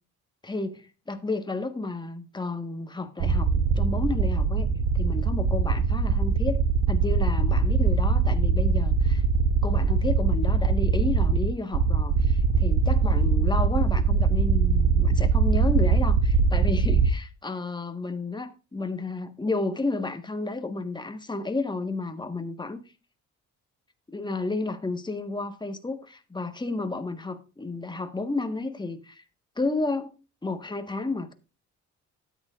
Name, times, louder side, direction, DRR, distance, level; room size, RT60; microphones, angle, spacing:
voice 1, 0.4-3.5 3.7-4.7 4.9-6.6 6.9-9.2 9.6-22.8 24.1-29.2 29.6-31.3, left 3 dB, 15° left, 1.5 m, -31 dB
sound 1, 3.2-17.1, right 5 dB, 80° right, 1.2 m, -22 dB
12.5 x 9.1 x 2.5 m
cardioid pair, 90°, 30 cm